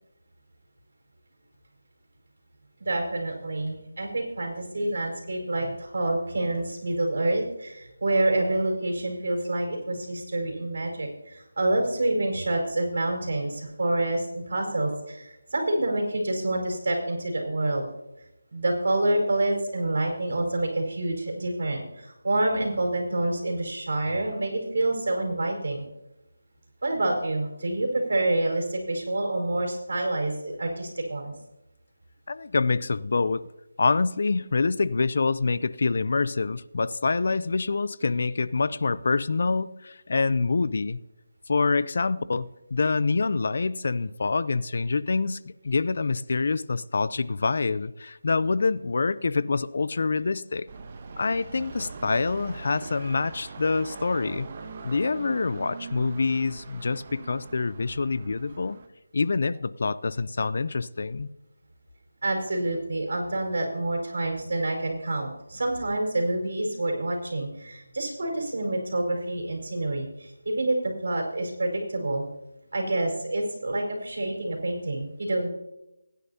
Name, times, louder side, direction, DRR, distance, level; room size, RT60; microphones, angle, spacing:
voice 1, 2.8-17.9 18.5-25.8 26.8-31.3 62.2-72.2 72.7-75.5, right 2 dB, 65° right, 4.7 m, -27 dB
voice 2, 32.3-33.5 33.8-41.0 41.5-50.7 51.2-54.5 54.8-58.8 59.1-61.3, left 4 dB, 55° left, 0.5 m, -26 dB
sound 1, 50.7-58.9, right 4 dB, 35° right, 1.1 m, -42 dB
21.0 x 10.0 x 2.8 m
figure-of-eight pair, 165°, 0 cm